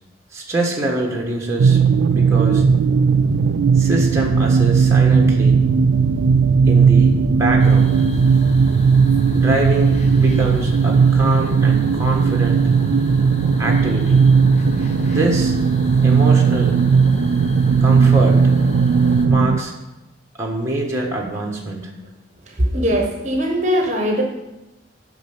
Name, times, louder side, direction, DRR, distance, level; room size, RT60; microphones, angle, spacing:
voice 1, 0.3-1.8 2.1-2.6 3.7-5.6 6.7-8.0 9.3-12.7 13.6-14.3 15.0-15.6 16.0-16.8 17.8-18.6 19.3-19.7 20.4-21.9, right 2 dB, 15° right, -1 dB, 1.3 m, -24 dB
sound 1, 1.6-19.6, right 5 dB, 70° right, 0.3 m, -16 dB
sound 2, 7.6-19.3, left 1 dB, 35° left, 1.0 m, -38 dB
voice 2, 22.5-24.2, equal, 35° right, 1 dB, 1.2 m, -20 dB
9.2 x 5.9 x 7.1 m, 0.99 s
head